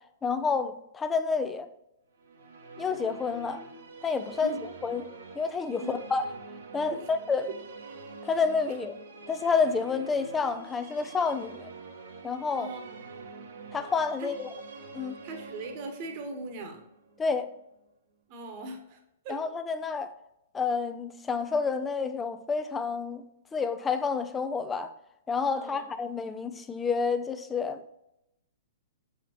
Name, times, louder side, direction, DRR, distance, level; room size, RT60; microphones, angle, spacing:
voice 1, 0.2-1.7 2.8-3.6 4.0-4.6 4.8-5.0 5.3-6.2 6.7-7.5 8.2-8.9 9.3-11.7 12.2-12.7 13.7-14.5 14.9-15.1 17.2-17.5 19.3-20.1 20.5-23.2 23.5-24.9 25.3-27.8, left 5 dB, 15° left, 0.5 m, -29 dB
Musical instrument, 2.2-17.6, right 4 dB, 65° right, 1.1 m, -46 dB
voice 2, 5.8-6.1 6.9-7.1 12.6-13.0 14.2-14.3 15.2-16.8 18.3-19.0 19.2-19.4 25.6-25.8, right 2 dB, 40° right, 1.2 m, -39 dB
6.7 x 5.7 x 3.0 m
figure-of-eight pair, 110°, 0 cm